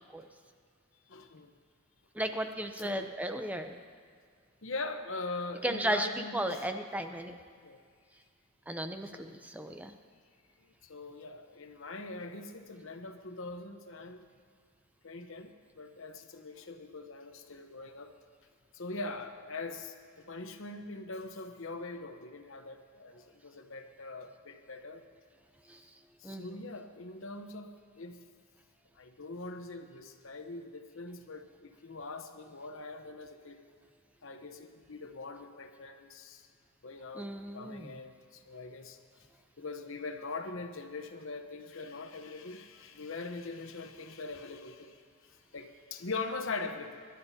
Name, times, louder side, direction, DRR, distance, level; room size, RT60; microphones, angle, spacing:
voice 1, 1.1-1.5 2.8-3.1 3.4-3.5 4.6-6.7 7.6-7.8 9.1-9.3 10.6-14.2 15.0-18.1 18.7-25.0 26.2-28.2 28.9-33.6 34.2-36.5 36.8-39.0 39.6-47.1, left 3 dB, 65° left, 6 dB, 0.9 m, -42 dB
voice 2, 2.2-3.8 5.6-6.1 6.3-7.3 8.7-9.9 26.2-26.6 37.1-37.9, right 1 dB, 5° right, 6 dB, 0.5 m, -35 dB
23.5 x 12.0 x 2.8 m, 2.1 s
head